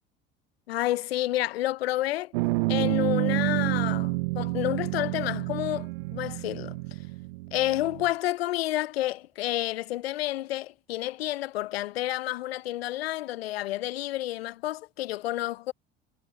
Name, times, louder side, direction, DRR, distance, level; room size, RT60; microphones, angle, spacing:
voice 1, 0.7-2.3 2.7-6.8 7.5-15.7, left 15 dB, 85° left, 0.5 m, -30 dB
sound 1, 2.3-8.1, right 24 dB, 75° right, 0.6 m, -29 dB
hypercardioid pair, 70°, 30 cm